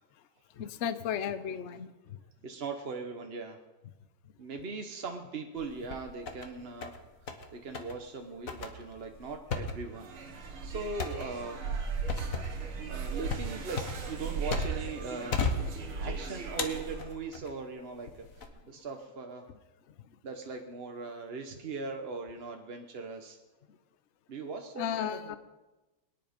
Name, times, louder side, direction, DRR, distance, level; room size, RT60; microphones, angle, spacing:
voice 1, 0.6-1.9 18.7-18.8 24.8-25.4, left 8 dB, 80° left, 12 dB, 0.6 m, -34 dB
voice 2, 2.4-3.6 4.4-7.0 7.5-11.6 12.9-15.5 16.0-18.1 18.4-19.4 20.2-23.4 24.3-25.4, right 4 dB, 45° right, 4 dB, 0.8 m, -40 dB
sound 1, 5.6-6.5 6.8-7.5 7.7-8.0 8.5-15.0 15.3-16.1 16.6-17.5 18.1-18.5, left 4 dB, 45° left, 1.6 m, -35 dB
sound 2, 9.9-17.1, right 5 dB, 80° right, 2.4 m, -37 dB
22.5 x 10.0 x 5.2 m, 1.1 s
omnidirectional pair, 2.3 m